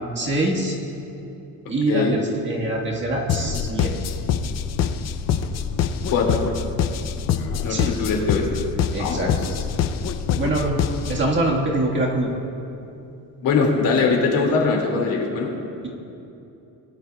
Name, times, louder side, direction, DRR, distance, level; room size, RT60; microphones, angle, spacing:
voice 1, 0.1-0.7 1.7-3.9 7.7-7.9 8.9-9.3 10.3-10.8 11.1-12.3, right 2 dB, 30° right, -2 dB, 1.6 m, -24 dB
sound 1, 3.3-11.3, left 7 dB, 45° left, 0.6 m, -25 dB
voice 2, 7.6-8.5 9.0-9.6 13.4-15.5, left 4 dB, 60° left, 0 dB, 2.3 m, -22 dB
21.0 x 12.0 x 2.3 m, 2.8 s
cardioid pair, 145°, 38 cm